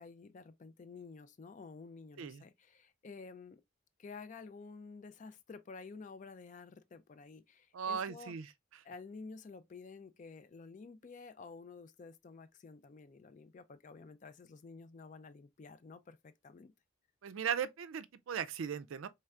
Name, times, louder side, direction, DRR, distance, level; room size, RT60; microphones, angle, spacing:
voice 1, 0.0-3.6 4.0-8.3 8.8-16.7, left 4 dB, 35° left, 0.3 m, -51 dB
voice 2, 7.7-8.5 17.2-19.1, right 7 dB, 75° right, 0.4 m, -37 dB
4.4 x 3.2 x 2.4 m
head